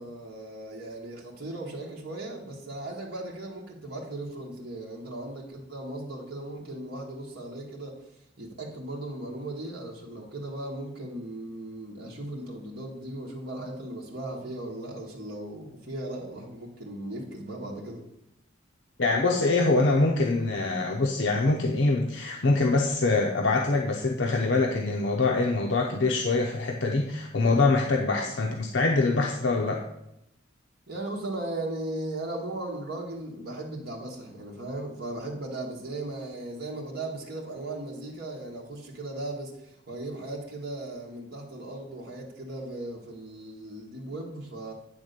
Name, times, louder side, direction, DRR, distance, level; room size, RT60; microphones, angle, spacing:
voice 1, 0.0-8.0 8.4-18.0 28.2-28.3 30.9-44.7, right 1 dB, 50° right, -2 dB, 1.4 m, -37 dB
voice 2, 19.0-29.8, left 3 dB, 65° left, 1 dB, 0.7 m, -24 dB
8.9 x 3.6 x 6.7 m, 0.84 s
head